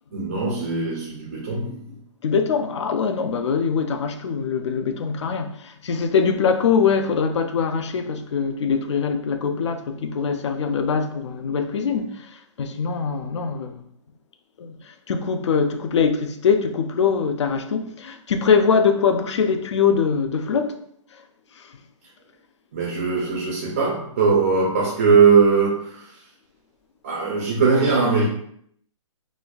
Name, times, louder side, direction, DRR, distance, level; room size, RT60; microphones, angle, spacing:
voice 1, 0.1-1.8 22.7-26.0 27.0-28.2, right 5 dB, 20° right, 0.4 m, -20 dB
voice 2, 2.2-13.8 14.6-20.8 21.6-21.8, left 6 dB, 60° left, 0.4 m, -23 dB
4.1 x 2.4 x 2.3 m
hypercardioid pair, 175°, 17 cm